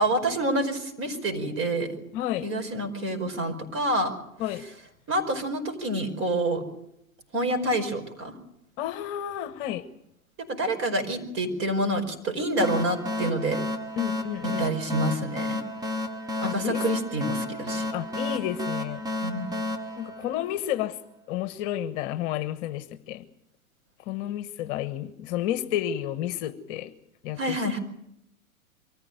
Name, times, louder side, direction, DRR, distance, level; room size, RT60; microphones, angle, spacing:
voice 1, 0.0-1.9 2.4-4.1 5.1-6.6 7.3-8.3 10.5-13.6 14.4-15.6 16.4-17.9 19.2-19.6 27.4-27.8, right 1 dB, 30° right, 6 dB, 5.0 m, -27 dB
voice 2, 2.1-2.5 4.4-4.6 8.8-9.8 14.0-14.7 16.4-16.8 17.9-19.1 20.0-21.0 21.3-23.2 24.1-26.9 27.2-27.8, left 12 dB, 40° left, 11 dB, 1.2 m, -31 dB
sound 1, 12.6-20.9, left 1 dB, 10° right, 1.2 m, -32 dB
24.0 x 14.5 x 9.2 m, 0.80 s
hypercardioid pair, 115°, 42 cm